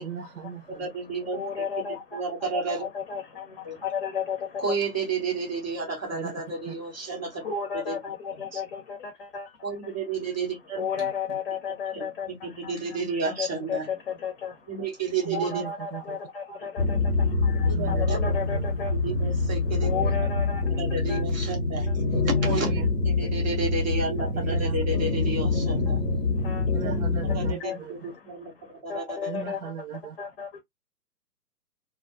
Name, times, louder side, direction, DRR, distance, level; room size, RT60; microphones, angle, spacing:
voice 1, 0.0-0.9 6.1-6.3 6.7-6.8 11.0-11.4 15.3-16.2 17.7-18.8 19.9-20.1 22.1-22.2 22.5-22.9 23.2-23.5 24.3-24.8 26.7-28.1 29.3-30.2, right 9 dB, 65° right, 0.6 m, -38 dB
voice 2, 0.7-1.4 2.1-2.8 3.6-3.8 4.6-7.4 7.7-8.0 8.3-8.6 9.6-10.8 11.7-13.9 14.7-15.6 17.7-18.2 19.0-19.9 20.7-21.9 22.4-26.0 26.8-26.9 27.3-29.3, right 4 dB, 15° right, 0.4 m, -32 dB
voice 3, 1.3-2.2 2.5-4.6 7.4-9.9 10.8-13.0 13.4-14.8 15.3-19.1 19.8-20.8 21.1-21.2 21.9-22.0 22.4-22.5 24.2-24.3 26.4-26.7 27.6-30.6, left 6 dB, 40° left, 0.7 m, -34 dB
sound 1, 16.8-27.5, left 3 dB, 70° left, 0.9 m, -25 dB
2.2 x 2.1 x 2.6 m
hypercardioid pair, 135°, 49 cm